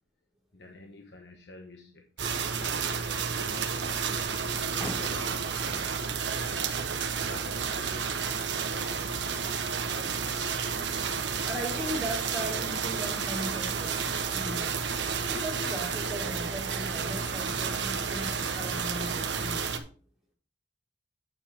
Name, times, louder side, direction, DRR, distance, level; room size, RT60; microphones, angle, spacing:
voice 1, 0.5-2.0 2.6-6.0 7.2-9.2, left 2 dB, 65° left, 3 dB, 1.1 m, -48 dB
sound 1, 2.2-19.8, right 6 dB, 85° right, 1.0 m, -31 dB
voice 2, 9.9-10.3 11.0-14.7 15.3-19.9, equal, ahead, -5 dB, 4.3 m, -38 dB
9.3 x 7.4 x 3.5 m, 0.40 s
head